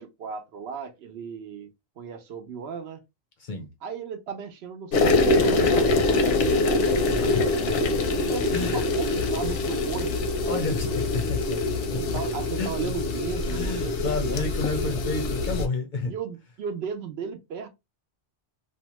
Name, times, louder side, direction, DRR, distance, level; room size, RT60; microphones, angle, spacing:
voice 1, 0.0-1.7 2.0-3.0 3.8-7.3 8.3-10.6 12.0-14.0 14.2-14.4 16.0-17.7, right 6 dB, 70° right, 0.8 m, -36 dB
voice 2, 3.4-3.7 7.3-7.9 8.5-8.9 10.5-12.0 12.6-12.7 13.5-16.1, left 3 dB, 55° left, 0.6 m, -31 dB
sound 1, 4.9-15.7, left 2 dB, 90° left, 0.9 m, -24 dB
2.6 x 2.1 x 2.9 m
omnidirectional pair, 1.1 m